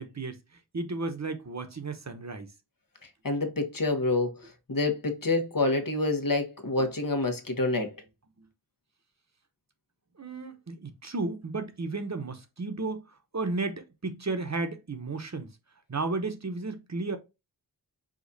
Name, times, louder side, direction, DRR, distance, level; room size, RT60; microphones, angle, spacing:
voice 1, 0.0-2.5 6.8-6.9 8.4-8.5 10.2-13.0 13.3-15.5 15.9-17.2, right 3 dB, 40° right, 0.9 m, -33 dB
voice 2, 3.2-4.3 4.7-7.9, left 2 dB, 55° left, 1.1 m, -27 dB
5.1 x 2.4 x 4.0 m
wide cardioid pair, 60°, 41 cm